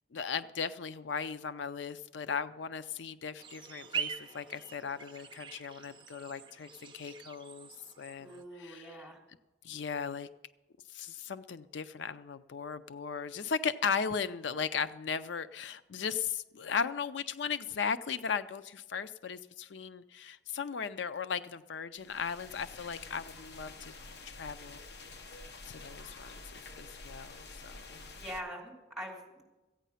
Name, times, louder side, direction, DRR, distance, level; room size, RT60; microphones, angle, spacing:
voice 1, 0.1-7.7 8.0-9.0 9.6-10.3 10.9-23.9 24.4-24.8 25.7-26.4 26.8-28.0, left 6 dB, 85° left, 13 dB, 0.5 m, -37 dB
sound 1, 3.4-8.4, right 7 dB, 25° right, 0.6 m, -43 dB
voice 2, 8.2-9.2 28.1-29.4, equal, ahead, -2 dB, 3.1 m, -43 dB
sound 2, 21.9-28.4, left 3 dB, 65° left, 0.9 m, -49 dB
15.0 x 9.2 x 5.6 m, 1.1 s
head